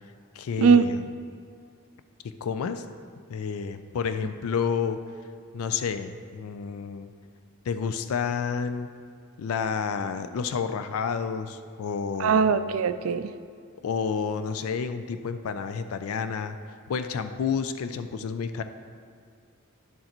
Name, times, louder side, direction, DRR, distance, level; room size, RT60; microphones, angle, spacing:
voice 1, 0.3-1.1 2.4-2.8 3.3-5.0 5.5-7.1 7.7-8.9 9.4-12.6 13.8-16.6 16.9-18.6, left 6 dB, 75° left, 10 dB, 0.4 m, -30 dB
voice 2, 12.2-13.3, right 5 dB, 70° right, 12 dB, 0.3 m, -20 dB
10.5 x 6.4 x 3.0 m, 2.2 s
head